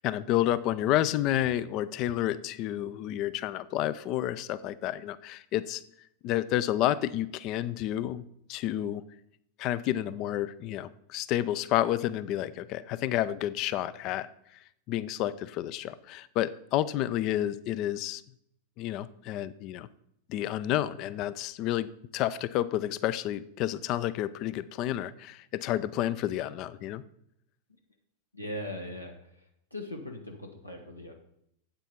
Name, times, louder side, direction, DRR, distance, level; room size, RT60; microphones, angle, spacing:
voice 1, 0.0-5.8 6.2-8.2 8.5-9.0 9.6-14.3 14.9-18.2 18.8-19.9 20.3-21.9 22.1-27.0, left 13 dB, 40° left, 17 dB, 0.4 m, -30 dB
voice 2, 28.3-29.1 29.7-31.1, left 1 dB, 85° left, 3 dB, 1.1 m, -39 dB
8.9 x 8.1 x 4.4 m, 0.74 s
figure-of-eight pair, 90°, 0 cm